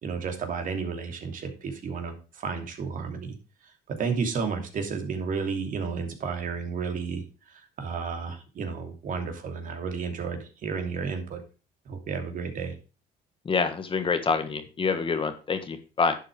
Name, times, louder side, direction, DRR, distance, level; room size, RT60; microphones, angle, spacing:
voice 1, 0.0-3.4 3.9-11.4 11.9-12.7, right 5 dB, 50° right, 5 dB, 2.8 m, -32 dB
voice 2, 13.4-16.2, left 5 dB, 30° left, 8 dB, 1.6 m, -26 dB
11.0 x 8.3 x 3.3 m, 0.33 s
cardioid pair, 110°, 17 cm